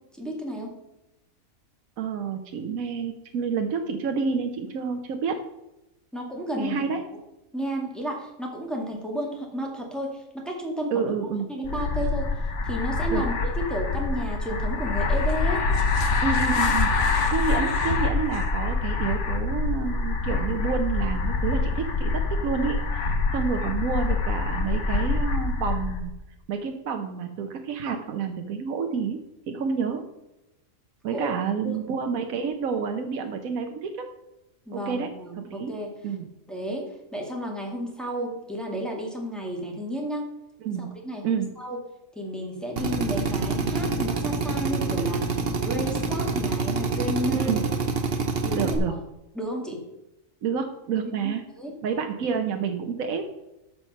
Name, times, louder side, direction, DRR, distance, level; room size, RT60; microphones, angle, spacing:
voice 1, 0.1-0.7 6.1-6.9 7.5-11.1 11.5-12.3 12.6-15.6 31.0-31.3 31.6-31.8 34.7-35.9 36.5-36.8 37.1-40.3 40.8-41.8 42.2-47.6 48.4-49.0 49.3-49.8 51.2-51.7, equal, ahead, -1 dB, 2.0 m, -32 dB
voice 2, 2.0-5.4 6.6-7.0 10.9-11.5 13.1-13.2 16.2-16.9 17.3-26.1 26.5-29.2 29.5-30.0 31.0-34.1 34.7-35.1 35.4-35.7 36.0-36.3 40.6-40.9 41.2-41.5 47.3-47.6 48.5-48.9 50.4-51.4 51.8-53.2, right 6 dB, 80° right, 4 dB, 1.3 m, -29 dB
sound 1, 11.6-26.1, left 3 dB, 60° left, 1.3 m, -25 dB
Drill, 42.8-48.8, right 4 dB, 45° right, 1.1 m, -27 dB
13.5 x 4.6 x 5.6 m, 0.92 s
omnidirectional pair, 1.4 m